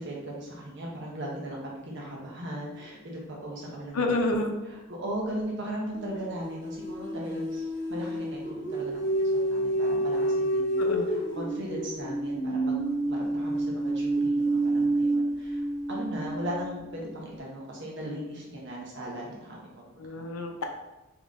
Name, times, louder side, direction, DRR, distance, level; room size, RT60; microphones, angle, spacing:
voice 1, 0.0-4.4 4.9-12.8 13.1-15.6 15.9-20.2, right 1 dB, 55° right, -3 dB, 1.1 m, -38 dB
voice 2, 3.9-4.5 10.8-11.2 20.0-20.6, left 2 dB, 85° left, 3 dB, 0.6 m, -29 dB
sound 1, 3.9-4.0 5.9-17.0, right 1 dB, 35° left, 0.9 m, -29 dB
3.8 x 3.0 x 3.6 m, 1.0 s
head